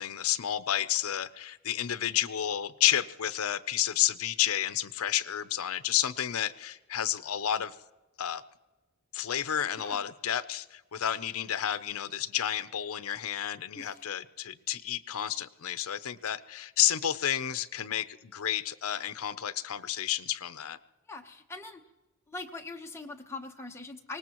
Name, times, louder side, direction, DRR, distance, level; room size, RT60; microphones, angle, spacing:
voice 1, 0.0-7.8 8.2-8.4 9.1-20.8, left 11 dB, 70° left, 14 dB, 0.6 m, -31 dB
voice 2, 21.1-21.8 22.3-24.2, left 3 dB, 10° left, 2 dB, 1.0 m, -42 dB
24.5 x 19.0 x 3.0 m, 1.1 s
head